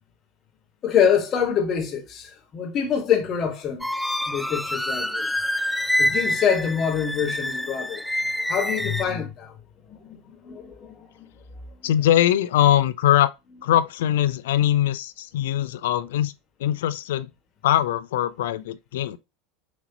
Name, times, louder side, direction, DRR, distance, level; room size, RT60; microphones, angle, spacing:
voice 1, 0.8-3.9 4.3-5.3 6.0-8.0 8.5-9.5 9.9-11.1, left 8 dB, 40° left, 1.5 m, -25 dB
sound 1, 3.8-9.0, left 1 dB, ahead, 0.3 m, -26 dB
voice 2, 11.8-13.3 13.6-16.3 16.6-17.3 17.6-19.2, left 12 dB, 75° left, 0.4 m, -21 dB
6.0 x 2.9 x 2.8 m
hypercardioid pair, 90°, 0 cm